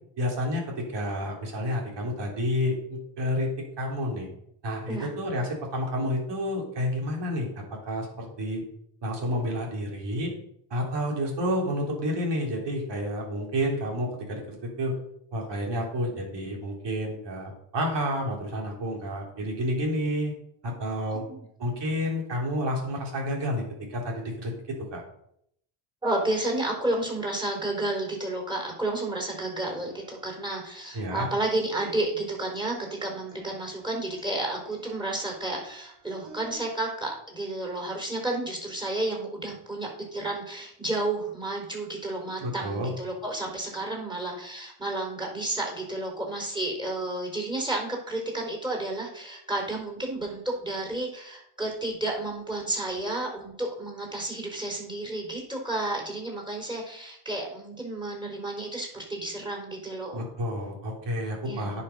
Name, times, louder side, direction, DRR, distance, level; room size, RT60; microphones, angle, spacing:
voice 1, 0.2-3.5 3.8-4.3 4.6-8.6 9.0-10.3 10.7-14.9 15.3-20.3 20.6-21.2 21.6-23.6 23.9-25.0 30.9-31.3 42.4-42.9 60.1-61.8, equal, 60° right, -1 dB, 3.8 m, -30 dB
voice 2, 21.1-21.4 26.0-32.8 33.0-60.3 61.5-61.8, right 2 dB, 10° right, 0 dB, 4.3 m, -31 dB
sound 1, 29.9-36.5, right 5 dB, 80° right, 3.6 m, -55 dB
9.9 x 5.8 x 5.5 m, 0.72 s
cardioid pair, 85°, 49 cm